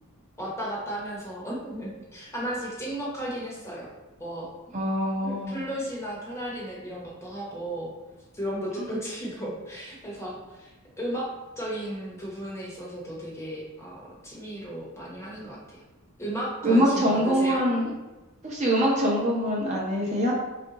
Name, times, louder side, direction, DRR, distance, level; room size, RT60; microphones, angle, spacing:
voice 1, 0.4-3.9 4.2-4.5 5.2-7.9 8.3-10.7 11.0-11.3 11.6-15.8 16.2-17.6, right 1 dB, 10° left, -4 dB, 0.8 m, -34 dB
voice 2, 4.7-5.6 16.6-17.9 18.4-20.3, equal, 30° right, -4 dB, 0.6 m, -24 dB
3.5 x 2.5 x 3.9 m, 1.1 s
head